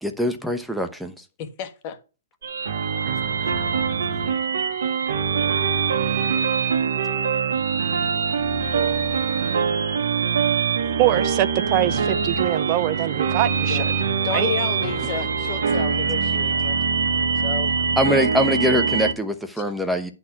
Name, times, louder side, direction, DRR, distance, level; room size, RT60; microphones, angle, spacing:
voice 1, 0.0-1.1 18.0-20.1, equal, ahead, 1.0 m, -23 dB
voice 2, 1.4-2.0 13.7-13.9 14.2-16.8 17.4-17.7 19.6-19.7, left 8 dB, 40° left, 1.5 m, -31 dB
sound 1, 2.4-19.1, right 6 dB, 80° right, 1.4 m, -23 dB
voice 3, 11.0-13.9 14.3-14.5, right 14 dB, 35° right, 0.5 m, -23 dB
10.5 x 4.3 x 5.9 m
hypercardioid pair, 145°, 0 cm